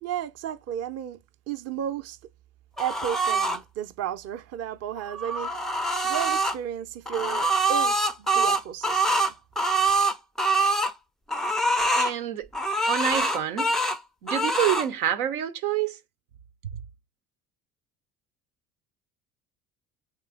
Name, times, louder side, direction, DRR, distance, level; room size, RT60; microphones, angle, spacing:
voice 1, 0.0-1.2 1.5-2.2 2.8-9.2, right 10 dB, 35° right, 0.6 m, -33 dB
sound 1, 2.8-3.6 5.0-6.6 7.1-10.9 11.3-12.1 12.5-14.0 14.3-14.9, right 2 dB, ahead, 0.4 m, -24 dB
voice 2, 11.9-12.5 12.9-13.7 14.2-16.0, right 11 dB, 75° right, 0.7 m, -27 dB
3.7 x 3.0 x 3.4 m
figure-of-eight pair, 60°, 44 cm